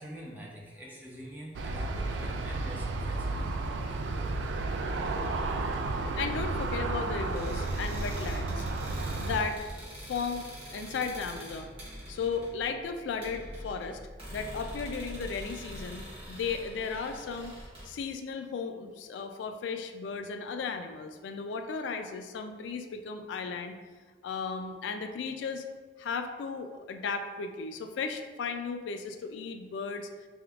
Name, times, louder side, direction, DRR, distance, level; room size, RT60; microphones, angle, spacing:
voice 1, 0.0-3.7, equal, 10° right, -3 dB, 0.5 m, -45 dB
Aircraft, 1.5-9.4, right 2 dB, 80° right, 0.3 m, -32 dB
voice 2, 6.2-8.7 9.2-9.7 10.1-11.7 12.1-14.0 14.3-17.6 17.9-23.8 24.2-25.7 26.0-30.1, left 5 dB, 90° left, 7 dB, 0.3 m, -35 dB
sound 1, 7.2-17.9, equal, 30° right, 1.2 m, -44 dB
3.8 x 3.6 x 2.3 m, 1.4 s
head